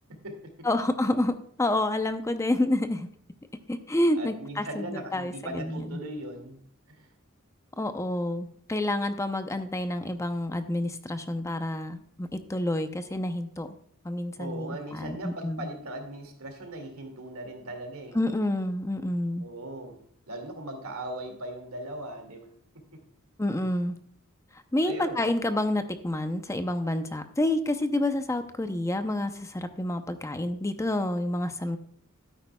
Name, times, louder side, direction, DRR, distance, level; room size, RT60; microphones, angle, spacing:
voice 1, 0.1-0.7 4.1-6.6 6.9-7.1 14.4-18.2 19.4-20.0 20.3-22.5 22.7-23.0 24.8-25.2, right 1 dB, 85° right, 4 dB, 2.2 m, -39 dB
voice 2, 0.6-3.1 3.7-6.0 7.8-13.7 14.0-15.7 18.1-19.4 23.4-23.9 24.5-31.8, left 1 dB, 15° left, 8 dB, 0.6 m, -29 dB
12.5 x 9.6 x 2.3 m, 0.62 s
head